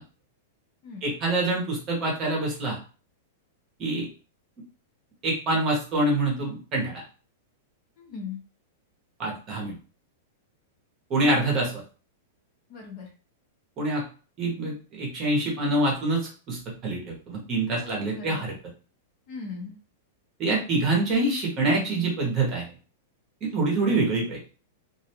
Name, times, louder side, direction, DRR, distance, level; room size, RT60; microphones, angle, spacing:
voice 1, 1.0-2.8 3.8-4.1 5.2-7.0 9.2-9.7 11.1-11.8 13.8-14.0 14.4-16.2 16.5-18.5 20.4-22.7 23.4-24.4, right 2 dB, 20° right, -2 dB, 0.8 m, -25 dB
voice 2, 8.0-8.4 12.7-13.1 17.8-18.5 19.3-19.8, left 5 dB, 30° left, 0 dB, 0.5 m, -39 dB
2.4 x 2.2 x 2.7 m, 0.36 s
supercardioid pair, 175°, 0 cm